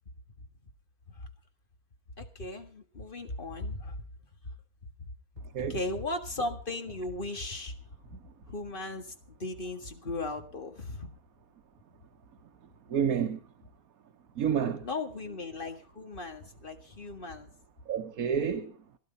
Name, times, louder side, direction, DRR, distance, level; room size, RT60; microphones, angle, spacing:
voice 1, 2.2-4.1 4.4-4.6 5.6-7.7 8.5-11.1 14.8-17.5, left 2 dB, 40° left, 1.9 m, -37 dB
voice 2, 12.9-13.4 14.4-14.8 17.9-18.7, right 7 dB, 85° right, 1.5 m, -29 dB
17.0 x 11.5 x 5.5 m
omnidirectional pair, 1.5 m